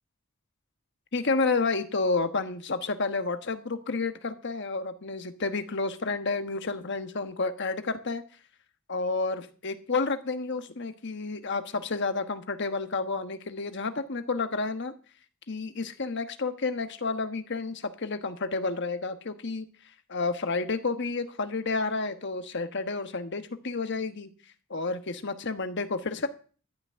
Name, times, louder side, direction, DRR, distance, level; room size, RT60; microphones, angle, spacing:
voice 1, 1.1-8.2 8.9-14.9 15.5-19.7 20.1-24.3 24.7-26.3, left 3 dB, 55° left, 8 dB, 1.2 m, -30 dB
13.5 x 6.0 x 8.7 m, 0.40 s
head